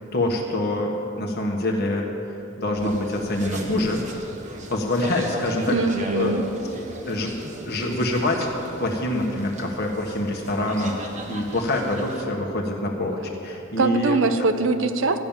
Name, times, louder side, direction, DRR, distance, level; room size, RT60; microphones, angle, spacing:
voice 1, 0.1-2.1 2.6-4.0 4.7-5.8 6.1-6.5 6.8-7.3 7.7-8.5 8.8-14.3, left 1 dB, 50° left, 0 dB, 1.4 m, -25 dB
sound 1, 2.7-12.2, right 1 dB, 35° right, 1.2 m, -36 dB
voice 2, 5.7-6.5 13.8-15.2, right 3 dB, 60° right, 9 dB, 0.7 m, -22 dB
13.0 x 7.2 x 8.9 m, 2.9 s
head